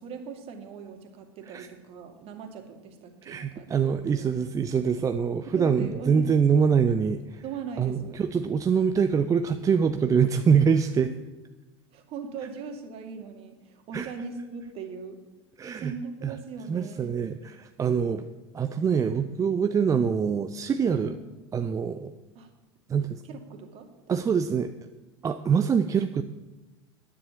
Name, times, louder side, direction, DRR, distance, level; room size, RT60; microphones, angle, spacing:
voice 1, 0.0-4.3 5.5-6.3 6.6-6.7 7.4-8.4 10.7-10.8 11.9-15.2 15.7-17.1 21.0-21.2 22.3-22.5 23.3-24.1, right 5 dB, 45° right, 5 dB, 2.4 m, -40 dB
voice 2, 3.2-7.4 7.8-11.1 13.9-14.1 15.6-15.9 16.2-16.3 16.7-18.3 18.5-21.2 21.5-22.1 22.9-23.2 24.1-24.7 25.2-26.2, right 6 dB, 25° right, 9 dB, 0.7 m, -24 dB
10.5 x 9.8 x 8.6 m, 1.1 s
figure-of-eight pair, 75°, 14 cm